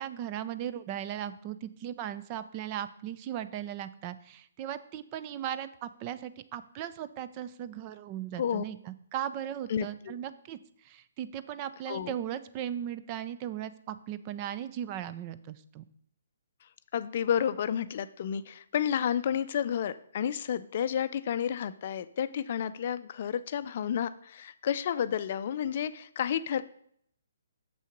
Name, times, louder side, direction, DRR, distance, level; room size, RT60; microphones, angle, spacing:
voice 1, 0.0-15.8, right 10 dB, 30° right, 13 dB, 0.4 m, -37 dB
voice 2, 9.7-10.2 11.9-12.1 16.9-26.6, left 9 dB, 50° left, 14 dB, 0.4 m, -31 dB
6.9 x 6.3 x 5.2 m, 0.66 s
figure-of-eight pair, 135°, 0 cm